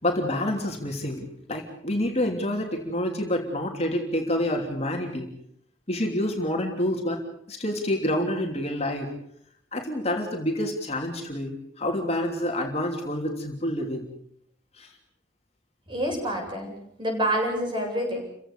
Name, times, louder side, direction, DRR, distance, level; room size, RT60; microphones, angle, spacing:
voice 1, 0.0-5.3 5.9-7.2 7.5-9.1 9.7-14.1 14.7-14.9, left 1 dB, 35° left, 2 dB, 3.1 m, -28 dB
voice 2, 15.9-18.2, right 1 dB, 25° right, 1 dB, 8.0 m, -27 dB
30.0 x 16.5 x 6.9 m, 0.70 s
head